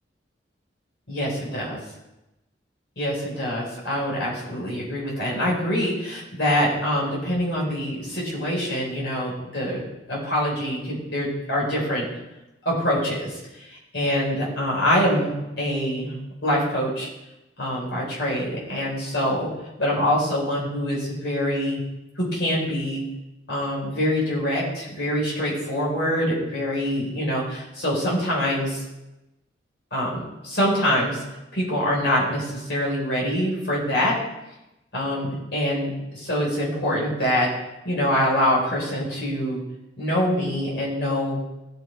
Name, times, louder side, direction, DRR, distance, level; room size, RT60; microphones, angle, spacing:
voice 1, 1.1-1.8 3.0-9.8 10.1-12.1 12.6-16.2 16.4-17.1 17.6-19.5 19.8-21.8 22.2-23.0 23.5-28.8 29.9-31.2 31.5-34.2 34.9-37.5 37.8-39.6 40.0-41.4, equal, 70° left, -5 dB, 4.1 m, -25 dB
16.0 x 5.5 x 4.5 m, 0.96 s
head